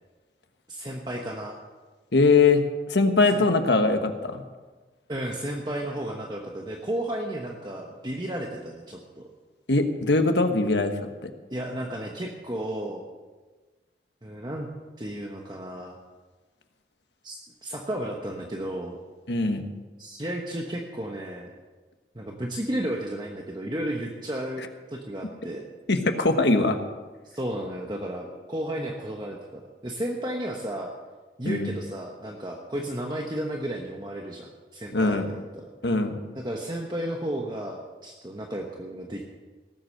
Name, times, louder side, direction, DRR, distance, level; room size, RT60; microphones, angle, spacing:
voice 1, 0.7-1.6 3.3-3.4 5.1-9.3 11.5-13.1 14.2-14.7 15.0-16.0 17.2-19.0 20.0-21.5 22.1-25.6 27.2-30.9 31.4-35.2 35.5-35.7 36.3-39.2, right 1 dB, 25° right, 0 dB, 1.1 m, -33 dB
voice 2, 2.1-2.6 2.9-4.4 9.7-10.9 19.3-19.6 25.9-26.8 31.4-31.7 34.9-35.3 35.8-36.2, left 3 dB, 85° left, 6 dB, 1.3 m, -21 dB
18.0 x 8.0 x 6.5 m, 1.3 s
head